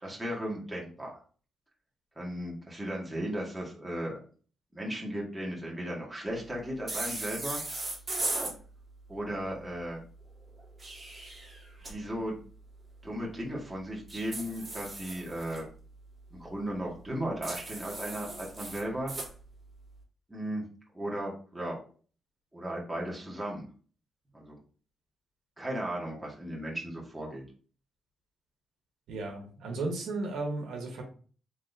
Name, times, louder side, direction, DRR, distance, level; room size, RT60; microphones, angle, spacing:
voice 1, 0.0-1.2 2.2-4.2 4.7-7.6 9.1-10.0 11.9-12.4 13.0-15.7 16.3-19.1 20.3-20.7 20.9-21.8 22.5-23.7 24.3-24.6 25.6-27.4, right 1 dB, 10° right, -3 dB, 1.8 m, -36 dB
sound 1, 6.9-8.5 10.6-11.9 14.1-15.6 17.4-19.3, right 2 dB, 25° right, 2.3 m, -37 dB
voice 2, 29.1-31.0, right 2 dB, 85° right, 1 dB, 1.4 m, -34 dB
4.0 x 3.6 x 3.4 m, 0.40 s
cardioid pair, 105°, 0 cm